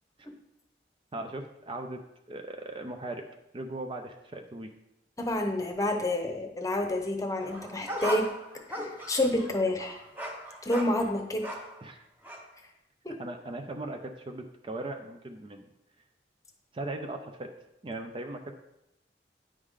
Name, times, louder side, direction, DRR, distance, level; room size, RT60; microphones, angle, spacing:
voice 1, 1.1-2.0 2.3-3.2 3.5-4.7 11.8-12.0 13.2-15.6 16.7-17.5 17.8-18.5, right 2 dB, 30° right, 5 dB, 0.5 m, -38 dB
voice 2, 5.2-8.3 8.7-10.0 10.6-11.5 13.0-13.2, left 1 dB, 20° left, 3 dB, 0.9 m, -29 dB
sound 1, 7.4-11.8 12.2-12.4, right 1 dB, 10° right, 0.9 m, -38 dB
9.7 x 4.9 x 3.7 m, 0.87 s
head